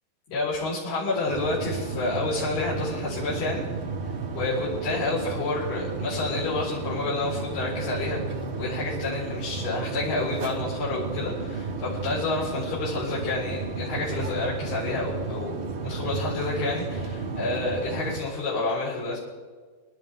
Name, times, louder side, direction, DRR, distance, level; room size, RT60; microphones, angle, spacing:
voice 1, 0.3-3.6 4.3-8.2 8.6-19.2, left 3 dB, 85° left, -10 dB, 6.6 m, -29 dB
sound 1, 1.3-18.2, right 4 dB, 60° right, 1.3 m, -33 dB
27.0 x 12.5 x 3.6 m, 1.5 s
omnidirectional pair, 4.4 m